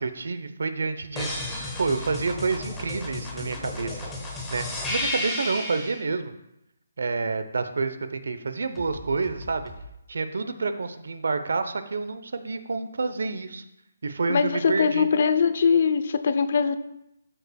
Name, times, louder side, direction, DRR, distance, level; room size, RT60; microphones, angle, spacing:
voice 1, 0.0-1.4 1.8-4.1 4.5-6.3 7.0-9.7 10.1-13.6 14.0-15.1, right 4 dB, 75° right, 10 dB, 0.8 m, -28 dB
sound 1, 1.2-6.0 8.8-9.8, left 1 dB, 10° left, 1.3 m, -33 dB
voice 2, 14.3-16.7, left 6 dB, 55° left, 11 dB, 0.6 m, -22 dB
12.5 x 5.5 x 2.3 m, 0.85 s
hypercardioid pair, 160°, 0 cm